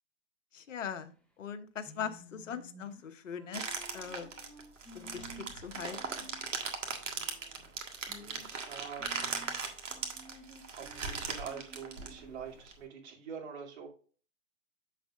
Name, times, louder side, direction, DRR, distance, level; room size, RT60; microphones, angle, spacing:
voice 1, 0.5-4.3 4.9-6.3, left 7 dB, 80° left, 11 dB, 1.0 m, -41 dB
sound 1, 1.8-6.7 7.0-7.1 7.3-7.4 8.0-8.5 8.9-12.5, equal, 5° left, 0.8 m, -54 dB
sound 2, 3.5-12.7, right 5 dB, 80° right, 1.8 m, -39 dB
voice 2, 7.0-7.7 8.1-9.6 10.7-13.9, right 7 dB, 60° right, -1 dB, 2.9 m, -46 dB
7.5 x 6.9 x 2.5 m, 0.39 s
hypercardioid pair, 125°, 37 cm